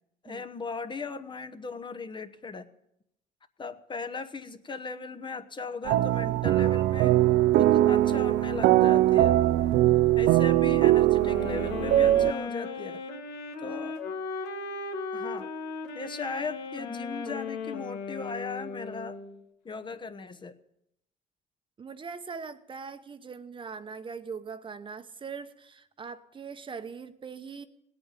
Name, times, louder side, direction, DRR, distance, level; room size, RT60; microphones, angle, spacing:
voice 1, 0.2-2.7 3.6-7.2 7.6-9.4 10.2-13.0 13.6-14.0 15.1-15.5 15.9-19.2 19.6-20.6, left 4 dB, 30° left, 9 dB, 1.0 m, -38 dB
sound 1, 5.9-12.3, right 14 dB, 80° right, 0.5 m, -21 dB
voice 2, 9.8-10.2 13.6-13.8 21.8-27.7, right 5 dB, 30° right, 10 dB, 0.9 m, -41 dB
sound 2, 11.2-19.4, left 4 dB, 90° left, 1.8 m, -36 dB
18.0 x 8.8 x 9.1 m, 0.80 s
cardioid pair, 110°, 17 cm